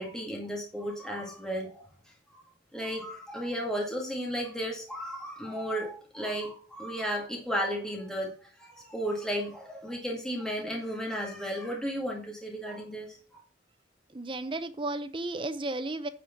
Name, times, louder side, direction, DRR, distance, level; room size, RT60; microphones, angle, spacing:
voice 1, 0.0-1.9 2.3-2.4 2.7-13.4, equal, 5° left, -1 dB, 2.1 m, -34 dB
voice 2, 14.1-16.1, right 2 dB, 25° right, 11 dB, 0.7 m, -33 dB
9.5 x 5.0 x 5.9 m, 0.39 s
head